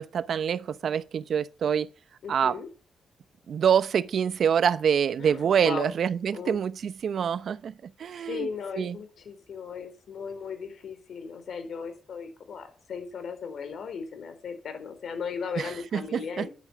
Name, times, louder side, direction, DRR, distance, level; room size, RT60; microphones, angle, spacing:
voice 1, 0.0-1.9 2.3-2.6 3.5-8.5 8.8-9.0 15.6-16.5, right 8 dB, 65° right, 0.7 m, -26 dB
voice 2, 2.2-2.7 5.2-5.9 6.3-6.6 8.2-16.5, left 6 dB, 65° left, 4.4 m, -37 dB
11.5 x 11.0 x 6.0 m
cardioid pair, 115°, 0 cm